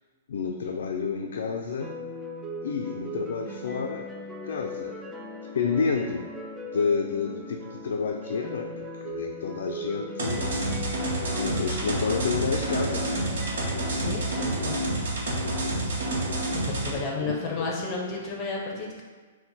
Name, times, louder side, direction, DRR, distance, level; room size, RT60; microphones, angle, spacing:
voice 1, 0.3-1.9 2.6-4.1 4.4-5.0 5.5-6.3 6.7-10.4 11.4-13.3 17.1-17.7, left 5 dB, 75° left, 2 dB, 0.3 m, -30 dB
sound 1, 1.8-15.0, left 1 dB, 10° right, 0.3 m, -39 dB
sound 2, 10.2-17.0, right 1 dB, 80° right, 0.9 m, -28 dB
voice 2, 13.8-14.8 16.6-19.0, left 3 dB, 25° left, -2 dB, 0.6 m, -32 dB
4.3 x 2.1 x 3.9 m, 1.4 s
hypercardioid pair, 160°, 0 cm